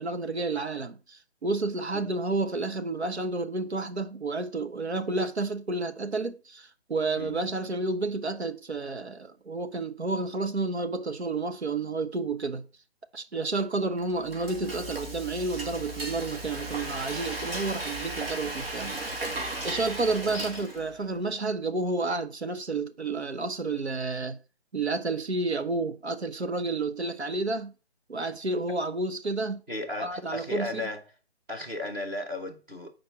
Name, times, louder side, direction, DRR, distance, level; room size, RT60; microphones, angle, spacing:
voice 1, 0.0-12.6 13.1-19.0 19.6-24.4 24.7-27.7 28.1-29.6 30.0-30.8, right 3 dB, 80° right, 1.1 m, -30 dB
voice 2, 7.2-7.5 20.3-20.6 29.7-31.0 31.5-32.9, left 2 dB, 10° right, 0.6 m, -35 dB
Frying (food), 14.0-21.0, right 1 dB, 60° right, 2.3 m, -36 dB
6.6 x 4.7 x 5.9 m
figure-of-eight pair, 145°, 32 cm